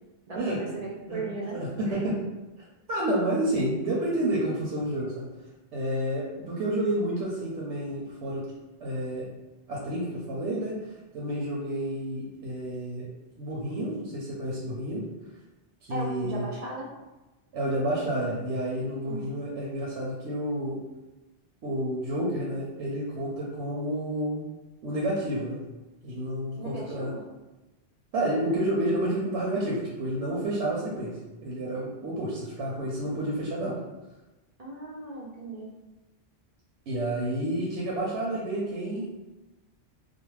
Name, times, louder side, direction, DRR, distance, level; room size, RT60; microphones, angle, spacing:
voice 1, 0.3-1.6 1.9-2.1 15.9-16.9 19.1-19.3 26.6-27.3 34.6-35.7, right 2 dB, 55° right, -4 dB, 0.4 m, -37 dB
voice 2, 1.5-2.1 2.9-5.3 5.7-8.4 8.8-9.3 9.7-10.7 11.1-13.1 13.4-15.0 15.9-16.4 17.5-20.8 21.6-24.4 24.8-25.6 26.0-27.1 28.1-31.1 31.4-33.8 36.9-39.2, right 1 dB, 80° right, -5 dB, 0.9 m, -30 dB
2.4 x 2.0 x 3.1 m, 1.1 s
omnidirectional pair, 1.2 m